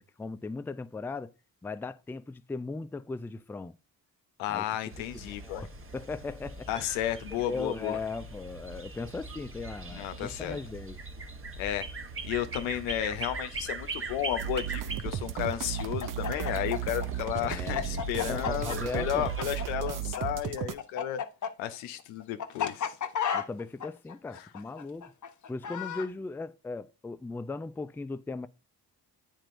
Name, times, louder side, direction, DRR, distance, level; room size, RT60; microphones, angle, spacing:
voice 1, 0.0-1.3 1.6-3.7 4.5-5.7 5.9-6.7 7.3-11.0 17.4-17.9 18.3-19.3 23.3-25.1 25.5-28.5, left 3 dB, 5° left, 0.4 m, -38 dB
voice 2, 4.4-5.7 6.7-8.0 9.9-10.6 11.6-11.9 12.2-21.2 21.6-22.9, left 12 dB, 85° left, 0.7 m, -33 dB
sound 1, 4.9-19.7, right 3 dB, 30° right, 1.2 m, -41 dB
sound 2, 14.4-20.7, right 9 dB, 45° right, 0.6 m, -34 dB
Chicken rooster, 15.8-20.2 20.4-26.1, left 8 dB, 40° left, 0.8 m, -33 dB
8.9 x 4.5 x 2.5 m
hypercardioid pair, 40°, 46 cm